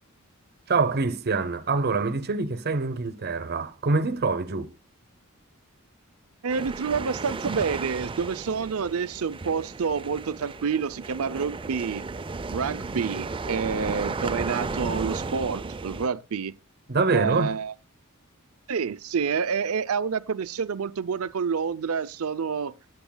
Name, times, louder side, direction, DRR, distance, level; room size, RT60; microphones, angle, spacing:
voice 1, 0.7-4.7 16.9-17.6, right 4 dB, 50° right, 0.9 m, -25 dB
voice 2, 6.4-12.1 12.5-16.6 17.1-17.7 18.7-22.7, right 6 dB, 75° right, 0.5 m, -28 dB
sound 1, 6.5-16.1, right 3 dB, 25° right, 0.5 m, -34 dB
17.5 x 8.2 x 2.2 m
head